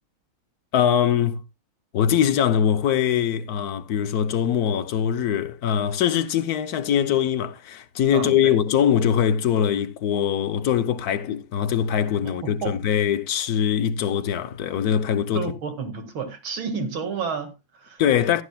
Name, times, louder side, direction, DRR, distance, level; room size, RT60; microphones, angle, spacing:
voice 1, 0.7-1.4 1.9-15.5 18.0-18.4, left 9 dB, 65° left, 1.0 m, -22 dB
voice 2, 8.1-8.6 12.2-12.8 15.3-18.0, right 5 dB, 90° right, 2.7 m, -31 dB
14.5 x 11.5 x 2.2 m
omnidirectional pair, 2.2 m